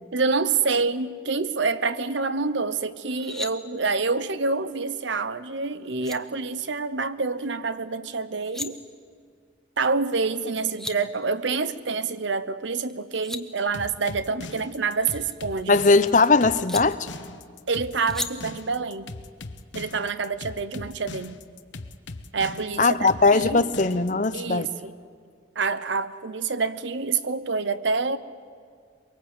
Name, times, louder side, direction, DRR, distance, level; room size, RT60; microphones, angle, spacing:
voice 1, 0.1-8.8 9.8-15.8 17.7-19.1 19.7-21.4 22.3-23.7 24.3-24.9 25.6-28.2, right 4 dB, 75° right, 0.9 m, -27 dB
sound 1, 3.0-3.5 5.6-5.7 6.0-6.2 8.2-8.7 10.4-10.5 10.6-11.0 12.9-13.4 14.9-15.9 16.7-16.8 18.1-18.3, left 1 dB, ahead, 0.7 m, -35 dB
sound 2, 13.7-24.3, left 2 dB, 75° left, 1.1 m, -39 dB
voice 2, 15.7-17.1 22.8-24.7, left 3 dB, 40° left, 0.7 m, -19 dB
23.0 x 23.0 x 8.0 m
head